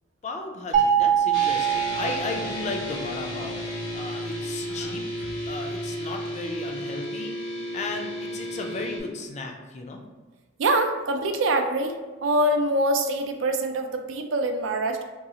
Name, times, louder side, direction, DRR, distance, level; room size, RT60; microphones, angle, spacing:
voice 1, 0.2-3.6 3.9-10.0, left 3 dB, 35° left, 3 dB, 0.4 m, -35 dB
sound 1, 0.7-3.0, right 8 dB, 40° right, 0.6 m, -23 dB
sound 2, 1.3-9.0, left 1 dB, 80° left, 0.9 m, -33 dB
voice 2, 10.6-11.9 12.2-15.0, right 1 dB, 75° right, 6 dB, 0.4 m, -24 dB
3.8 x 2.3 x 2.8 m, 1.3 s
head